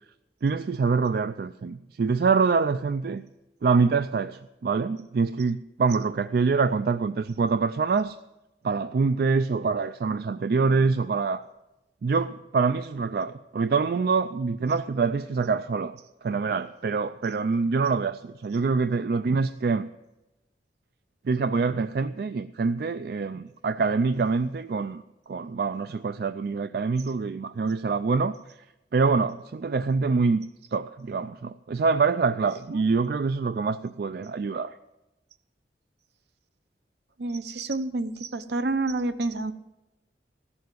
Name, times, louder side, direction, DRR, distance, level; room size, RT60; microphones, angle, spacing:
voice 1, 0.4-3.2 3.6-8.2 8.6-11.4 12.0-16.0 16.2-19.9 21.3-25.0 25.3-28.3 28.9-30.4 30.7-34.7, right 4 dB, 55° right, 11 dB, 0.4 m, -25 dB
voice 2, 37.2-39.5, right 2 dB, 70° right, 11 dB, 0.8 m, -29 dB
15.5 x 7.0 x 7.9 m, 0.99 s
head